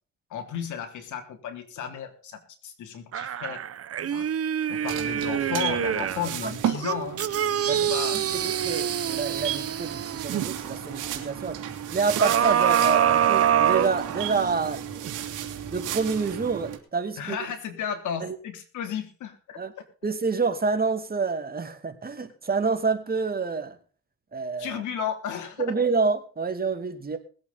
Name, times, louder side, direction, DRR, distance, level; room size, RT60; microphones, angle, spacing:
voice 1, 0.3-3.7 4.0-4.3 4.7-7.3 7.6-8.4 17.2-19.6 24.6-25.7, left 8 dB, 75° left, 3.3 m, -34 dB
sound 1, 3.1-6.3 6.8-10.5 12.2-14.5 15.0-15.1, right 9 dB, 50° right, 1.0 m, -25 dB
sound 2, 4.8-16.8, right 10 dB, 85° right, 2.7 m, -34 dB
voice 2, 8.3-11.6 11.9-15.1 15.7-17.4 18.2-18.3 19.6-19.7 20.0-23.8 24.3-24.8 25.6-27.2, right 4 dB, 30° right, 2.5 m, -28 dB
20.5 x 8.4 x 4.1 m
cardioid pair, 90°, 30 cm